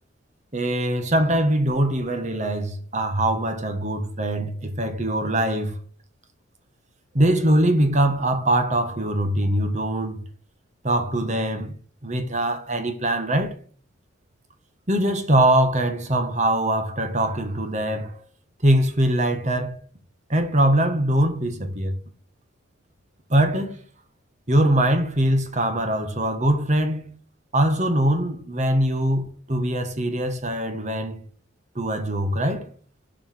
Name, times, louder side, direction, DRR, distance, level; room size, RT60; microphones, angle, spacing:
voice 1, 0.5-5.8 7.1-10.2 10.8-11.7 12.0-13.6 14.9-18.1 18.6-19.8 20.3-22.0 23.3-23.8 24.5-27.1 27.5-31.2 31.7-32.7, right 1 dB, 35° right, 1.6 m, -22 dB
7.5 x 5.0 x 6.2 m
head